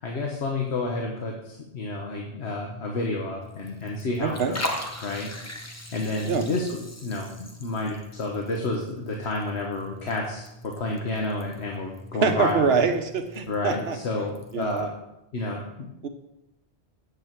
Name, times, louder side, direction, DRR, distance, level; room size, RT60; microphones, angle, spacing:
voice 1, 0.0-4.6 5.0-5.3 5.9-12.8 13.5-14.9 15.3-15.9, left 2 dB, 80° left, 0 dB, 1.4 m, -30 dB
Liquid, 3.4-14.8, left 1 dB, 15° left, 0.8 m, -40 dB
voice 2, 4.2-4.5 6.3-6.5 12.2-14.0 14.5-14.9 16.0-16.1, right 5 dB, 70° right, 7 dB, 1.1 m, -24 dB
8.1 x 8.1 x 4.5 m, 0.89 s
omnidirectional pair, 1.1 m